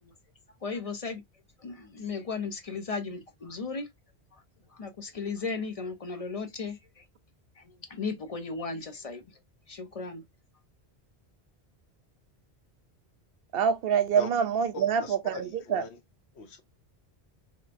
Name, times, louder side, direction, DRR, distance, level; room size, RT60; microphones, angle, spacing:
voice 1, 0.6-1.2 1.6-3.9 4.7-7.0 7.9-9.2 9.7-10.2, left 4 dB, 45° left, 0.6 m, -35 dB
voice 2, 13.5-15.8, right 7 dB, 65° right, 0.7 m, -26 dB
voice 3, 14.7-16.0 16.3-16.6, left 3 dB, 85° left, 1.1 m, -40 dB
3.2 x 2.8 x 2.5 m
omnidirectional pair, 1.1 m